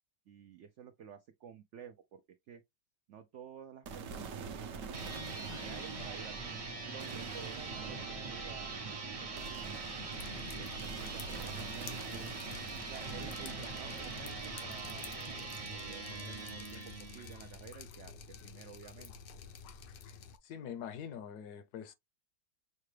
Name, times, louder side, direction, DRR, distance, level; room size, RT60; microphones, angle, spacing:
voice 1, 0.3-2.6 3.1-4.9 5.3-9.7 10.2-12.3 12.9-15.1 15.7-19.1, right 8 dB, 80° right, 0.6 m, -52 dB
sound 1, 3.8-18.1, right 5 dB, 60° right, 0.9 m, -46 dB
sound 2, 4.8-17.6, right 3 dB, 35° right, 0.5 m, -43 dB
Drip, 10.1-20.4, left 5 dB, 85° left, 1.4 m, -50 dB
voice 2, 20.4-21.9, left 8 dB, 70° left, 1.1 m, -44 dB
6.6 x 2.2 x 3.2 m
omnidirectional pair, 1.9 m